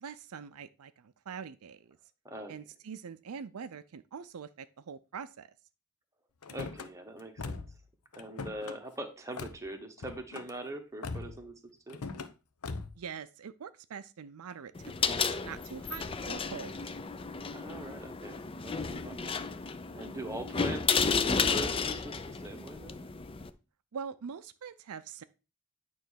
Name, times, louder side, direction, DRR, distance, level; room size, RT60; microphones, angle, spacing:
voice 1, 0.0-2.0 2.5-5.5 13.0-16.8 23.9-25.2, right 6 dB, 75° right, 0.5 m, -44 dB
Car / Slam, 6.4-6.9 7.4-7.8 8.1-8.8 9.4-9.6 10.0-10.5 11.0-11.4 11.9-12.3 12.6-13.0, left 4 dB, 85° left, 0.8 m, -40 dB
voice 2, 6.5-7.6 8.1-11.5 11.9-12.0 17.5-23.1, right 1 dB, 15° right, 1.1 m, -43 dB
sound 1, 14.8-23.5, left 5 dB, 25° left, 0.5 m, -32 dB
9.1 x 3.1 x 6.2 m
head